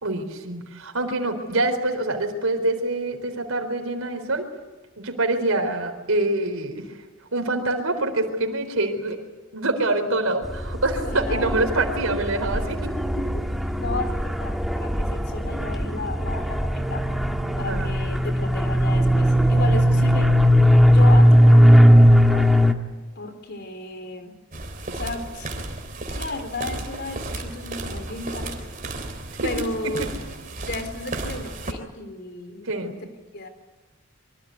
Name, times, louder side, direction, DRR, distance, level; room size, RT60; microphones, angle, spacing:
voice 1, 0.0-4.5 5.0-6.9 7.3-9.2 9.5-12.9 17.6-17.9 29.4-29.5 29.8-29.9 32.6-32.9, right 2 dB, 80° right, 4 dB, 4.1 m, -25 dB
sound 1, 10.4-22.7, equal, ahead, 1.7 m, -18 dB
voice 2, 11.0-11.5 13.2-13.4 13.8-17.0 17.6-20.4 20.8-22.5 23.2-24.4 24.9-25.5 26.1-28.6 29.4-30.1 30.6-32.7 33.3-33.5, left 2 dB, 50° left, 8 dB, 3.8 m, -34 dB
sound 2, 24.5-31.7, right 2 dB, 40° right, 3.5 m, -33 dB
26.0 x 24.0 x 9.6 m, 1.2 s
head